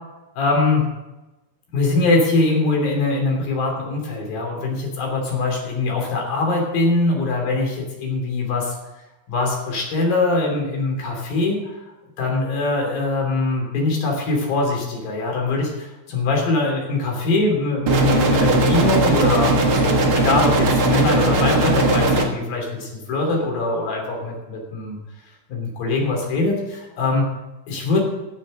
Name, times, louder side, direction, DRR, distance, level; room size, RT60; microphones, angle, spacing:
voice 1, 0.3-0.8 1.7-8.7 9.3-11.8 12.2-25.0 25.5-27.3 27.7-28.0, left 2 dB, 75° left, 0 dB, 5.0 m, -22 dB
sound 1, 17.9-22.3, right 2 dB, 50° right, 1.9 m, -18 dB
16.5 x 6.9 x 6.5 m, 1.0 s
omnidirectional pair, 4.2 m